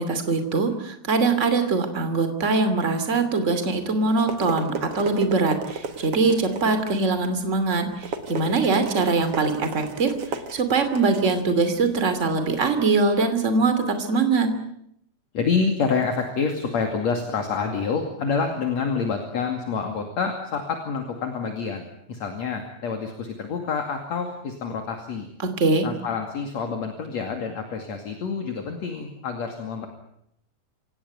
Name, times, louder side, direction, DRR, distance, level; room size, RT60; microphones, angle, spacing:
voice 1, 0.0-7.9 8.3-10.1 10.5-14.5 25.4-25.9, right 3 dB, 25° right, 8 dB, 2.7 m, -22 dB
sound 1, 3.8-12.7, right 4 dB, 50° right, 2.4 m, -36 dB
voice 2, 15.3-25.3 25.8-29.9, left 5 dB, 55° left, 4 dB, 3.5 m, -27 dB
27.0 x 17.5 x 9.4 m, 0.75 s
omnidirectional pair, 3.9 m